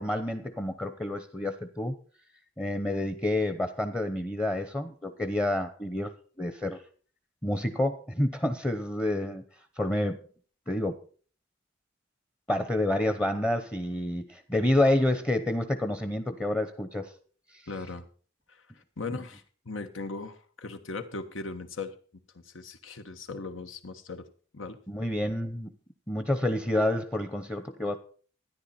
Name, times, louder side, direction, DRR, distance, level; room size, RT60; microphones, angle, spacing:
voice 1, 0.0-1.9 2.6-6.8 7.4-9.4 9.8-10.2 10.7-11.0 12.5-17.1 24.9-25.7 26.1-28.0, left 1 dB, 15° left, 9 dB, 0.9 m, -28 dB
voice 2, 17.7-18.0 18.5-21.9 22.3-24.3 24.5-24.8, left 3 dB, 80° left, 8 dB, 1.4 m, -38 dB
13.5 x 10.0 x 4.3 m, 0.41 s
head